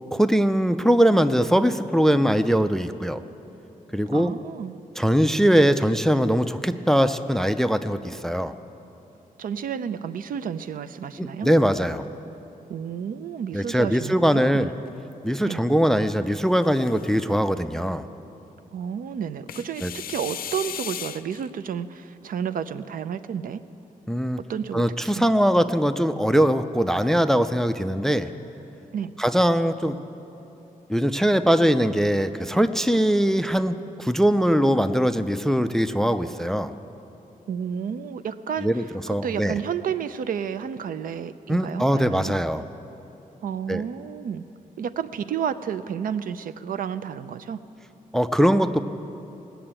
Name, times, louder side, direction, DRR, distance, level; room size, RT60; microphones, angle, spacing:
voice 1, 0.1-3.2 3.9-4.3 5.0-8.5 11.2-12.1 13.5-14.7 15.2-18.1 19.8-19.9 24.1-24.4 24.7-28.3 29.2-30.0 30.9-36.7 38.6-38.8 39.1-39.5 41.5-42.6 43.7-43.8 48.1-48.8, equal, 5° left, 11 dB, 0.3 m, -21 dB
voice 2, 4.1-4.8 9.4-11.5 12.7-14.7 15.4-15.6 18.7-23.6 24.5-25.3 28.9-29.1 37.5-42.3 43.4-44.4 44.8-47.6, right 8 dB, 70° right, 13 dB, 0.5 m, -31 dB
sound 1, 14.4-15.3 16.3-17.4 19.5-21.5, left 9 dB, 80° left, 0.5 m, -37 dB
18.5 x 6.9 x 8.7 m, 3.0 s
wide cardioid pair, 165°, 15 cm